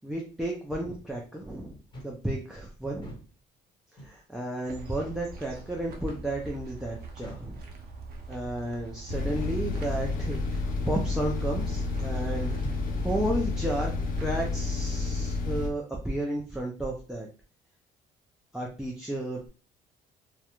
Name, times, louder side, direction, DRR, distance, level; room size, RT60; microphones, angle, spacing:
voice 1, 0.0-1.8 2.0-3.2 3.9-7.6 8.3-12.6 13.0-13.9 14.2-17.3 18.5-19.5, right 1 dB, 5° right, -2 dB, 0.4 m, -33 dB
sound 1, 1.9-2.2 2.9-3.3 4.0-4.2 5.0-5.2 6.1-6.3 7.2-7.5 8.4-8.6 9.4-9.6 10.4-10.6 11.6-11.8 12.6-12.8 13.7-13.9, equal, 30° left, 1.2 m, -46 dB
sound 2, 4.6-14.3, right 3 dB, 65° right, 0.6 m, -44 dB
sound 3, 9.1-15.7, left 3 dB, 55° left, 0.5 m, -30 dB
2.3 x 2.1 x 2.9 m, 0.36 s
cardioid pair, 110°, 17 cm